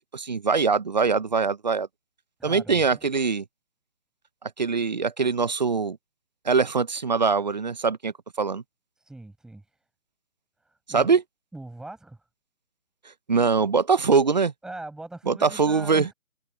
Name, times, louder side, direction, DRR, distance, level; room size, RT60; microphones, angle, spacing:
voice 1, 0.0-1.9 2.4-3.4 4.6-6.0 6.4-8.1 8.4-8.6 10.9-11.2 13.3-14.5 15.3-16.1, right 5 dB, 35° right, 0.8 m, -22 dB
voice 2, 2.4-3.1 9.0-9.7 10.6-11.2 11.5-12.2 14.6-16.1, right 2 dB, ahead, 6.6 m, -41 dB
figure-of-eight pair, 160°, 40 cm